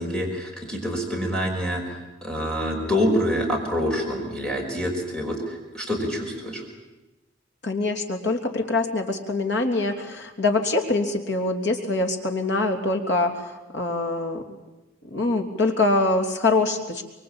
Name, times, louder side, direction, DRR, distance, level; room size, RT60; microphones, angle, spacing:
voice 1, 0.0-1.8 2.2-6.6, equal, 5° left, 0 dB, 5.4 m, -26 dB
voice 2, 7.6-14.6 15.1-17.0, left 2 dB, 65° left, 4 dB, 3.2 m, -24 dB
25.0 x 23.0 x 8.9 m, 1.0 s
head